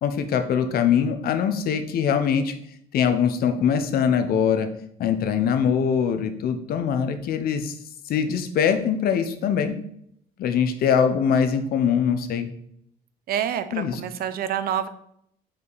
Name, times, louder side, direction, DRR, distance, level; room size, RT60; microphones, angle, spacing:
voice 1, 0.0-2.5 2.9-4.7 5.0-7.7 8.1-9.7 10.4-12.5 13.7-14.0, left 7 dB, 65° left, 8 dB, 0.8 m, -22 dB
voice 2, 13.3-14.9, right 9 dB, 60° right, 12 dB, 0.6 m, -27 dB
5.5 x 5.0 x 4.0 m, 0.71 s
cardioid pair, 110°, 17 cm